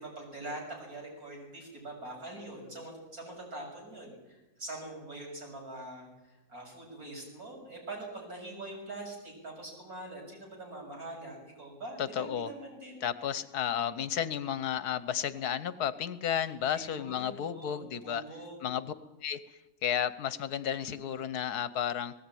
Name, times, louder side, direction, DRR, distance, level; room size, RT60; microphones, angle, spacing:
voice 1, 0.0-13.1 16.7-18.6, right 2 dB, 65° right, 0 dB, 7.3 m, -44 dB
voice 2, 12.0-12.5 13.0-18.2 18.6-18.9 19.2-19.4 19.8-22.1, left 9 dB, 75° left, 14 dB, 1.4 m, -32 dB
18.5 x 17.0 x 9.2 m, 1.0 s
omnidirectional pair, 1.7 m